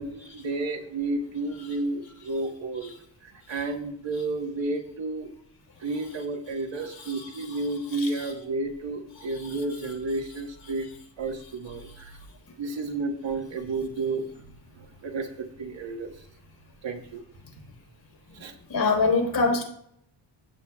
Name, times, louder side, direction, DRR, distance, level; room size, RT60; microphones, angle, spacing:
voice 1, 0.0-2.9 3.2-5.3 5.8-10.9 11.2-12.1 12.6-14.4 14.7-16.2 16.8-17.2 18.3-18.5, right 2 dB, 80° right, 3 dB, 1.6 m, -31 dB
voice 2, 18.7-19.6, left 3 dB, 65° left, 2 dB, 4.2 m, -23 dB
15.5 x 7.4 x 2.4 m, 0.69 s
cardioid pair, 85°, 45 cm